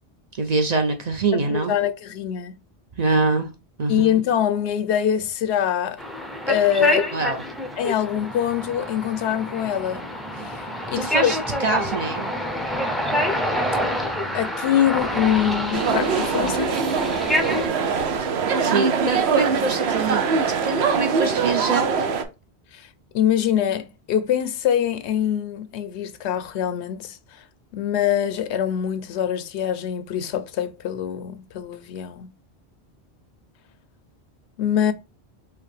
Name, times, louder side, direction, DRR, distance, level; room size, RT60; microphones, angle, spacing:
voice 1, 0.4-1.7 3.0-3.5 3.8-4.2 7.1-7.4 11.0-12.3 17.9-18.3 18.6-20.3 20.6-21.9, right 3 dB, 45° right, 0.6 m, -24 dB
voice 2, 1.3-2.6 3.9-6.0 6.5-7.1 7.8-10.1 10.4-10.6 10.9-11.3 14.3-16.8 22.7-22.9 23.1-27.2 27.7-32.3 34.6-34.9, left 9 dB, 80° left, 0.9 m, -24 dB
sound 1, 6.0-17.7, left 1 dB, ahead, 0.4 m, -27 dB
sound 2, 15.7-22.2, right 5 dB, 75° right, 0.9 m, -23 dB
4.8 x 3.0 x 3.3 m
omnidirectional pair, 1.1 m